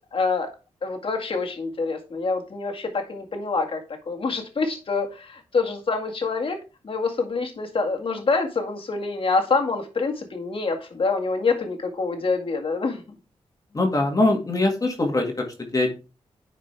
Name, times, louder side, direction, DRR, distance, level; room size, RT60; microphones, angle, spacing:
voice 1, 0.1-0.5 0.8-13.2, left 4 dB, 55° left, 3 dB, 2.0 m, -26 dB
voice 2, 13.7-15.9, left 2 dB, 35° left, 2 dB, 2.1 m, -22 dB
10.0 x 5.2 x 3.4 m, 0.32 s
cardioid pair, 75°, 11 cm